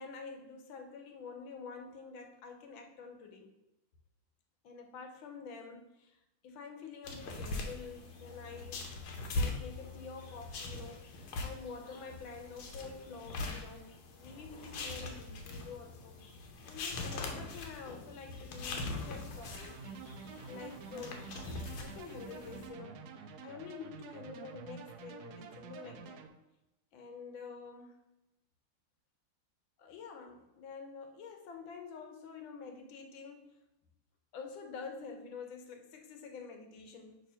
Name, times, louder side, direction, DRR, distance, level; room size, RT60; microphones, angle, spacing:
voice 1, 0.0-3.5 4.6-6.2 6.4-8.9 9.3-19.8 20.5-21.3 21.8-26.2 26.9-28.0 29.8-33.5 34.3-37.2, left 5 dB, 70° left, 5 dB, 1.6 m, -48 dB
sound 1, 7.0-22.7, left 2 dB, 85° left, 1.8 m, -42 dB
sound 2, 19.4-26.3, right 6 dB, 80° right, 0.9 m, -49 dB
6.3 x 3.1 x 5.5 m, 0.95 s
omnidirectional pair, 2.3 m